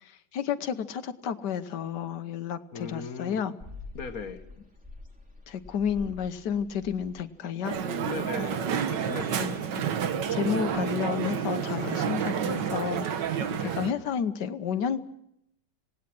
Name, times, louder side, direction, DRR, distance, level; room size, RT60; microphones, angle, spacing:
voice 1, 0.0-3.5 5.5-7.8 9.4-9.6 10.3-13.4 13.8-15.0, left 7 dB, 70° left, 11 dB, 1.6 m, -31 dB
voice 2, 2.7-3.4 3.9-4.4 8.1-9.7 13.5-13.8, left 5 dB, 55° left, 8 dB, 1.8 m, -38 dB
sound 1, 3.6-10.9, left 3 dB, 5° right, 2.8 m, -49 dB
Crowd, 7.6-13.9, right 8 dB, 80° right, 1.8 m, -29 dB
26.5 x 18.5 x 6.1 m, 0.78 s
omnidirectional pair, 1.9 m